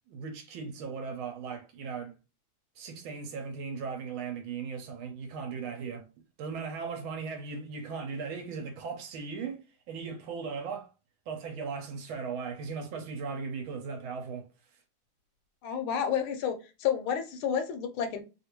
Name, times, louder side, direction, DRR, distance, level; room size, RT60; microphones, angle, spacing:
voice 1, 0.1-2.1 2.8-6.1 6.4-9.6 9.9-10.9 11.3-14.4, right 5 dB, 75° right, 1.4 m, -37 dB
voice 2, 15.6-18.2, left 8 dB, 80° left, 1.4 m, -30 dB
3.4 x 2.5 x 2.9 m
omnidirectional pair, 2.4 m